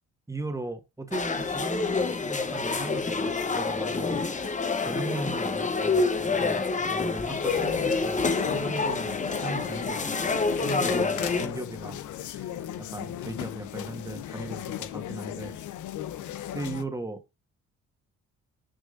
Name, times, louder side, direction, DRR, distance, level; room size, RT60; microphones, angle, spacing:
voice 1, 0.3-10.3 10.6-15.6 16.5-17.2, right 2 dB, 10° right, 1.7 m, -38 dB
sound 1, 1.1-11.5, left 4 dB, 25° left, 1.0 m, -27 dB
sound 2, 7.3-16.8, left 11 dB, 75° left, 0.9 m, -37 dB
6.5 x 6.2 x 2.7 m
cardioid pair, 90°, 30 cm